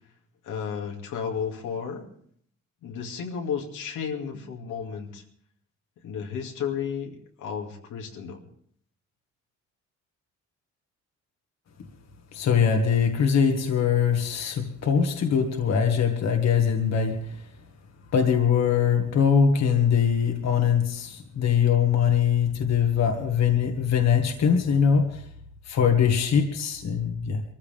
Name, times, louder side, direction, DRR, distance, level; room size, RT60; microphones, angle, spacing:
voice 1, 0.4-2.1 2.8-5.2 6.0-8.4, left 7 dB, 85° left, 1 dB, 2.5 m, -33 dB
voice 2, 12.3-17.5 18.1-25.3 25.7-27.4, left 7 dB, 60° left, 4 dB, 1.9 m, -22 dB
23.0 x 14.5 x 3.5 m, 0.63 s
cardioid pair, 90°, 30 cm